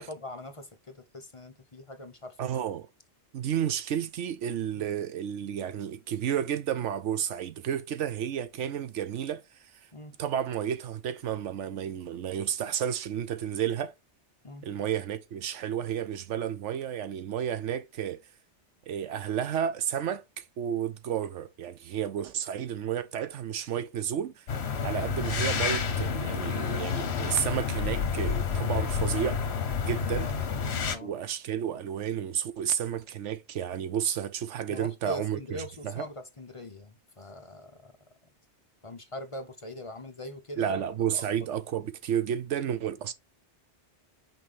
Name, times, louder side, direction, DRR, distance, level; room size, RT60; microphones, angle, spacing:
voice 1, 0.0-2.6 4.7-4.8 9.9-10.1 14.4-14.6 24.7-25.0 30.0-30.3 30.8-31.1 34.7-37.9 38.8-40.8 41.1-41.2, left 1 dB, 30° left, 0.8 m, -42 dB
voice 2, 2.4-2.9 3.3-9.4 10.2-13.9 14.6-18.2 18.9-24.4 24.8-29.4 29.8-30.3 31.0-36.0 40.6-43.1, right 9 dB, 85° right, 1.0 m, -31 dB
sound 1, 24.5-31.0, left 6 dB, 65° left, 1.2 m, -29 dB
6.0 x 4.7 x 3.4 m
omnidirectional pair, 1.2 m